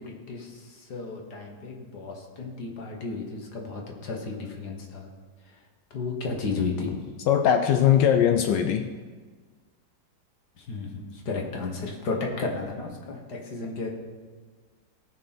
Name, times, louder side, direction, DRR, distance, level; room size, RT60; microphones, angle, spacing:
voice 1, 0.0-5.1 5.9-7.0 10.6-13.9, left 4 dB, 60° left, 1 dB, 2.0 m, -33 dB
voice 2, 7.3-8.9, left 9 dB, 75° left, 7 dB, 1.2 m, -20 dB
17.0 x 6.4 x 4.3 m, 1.5 s
omnidirectional pair, 2.0 m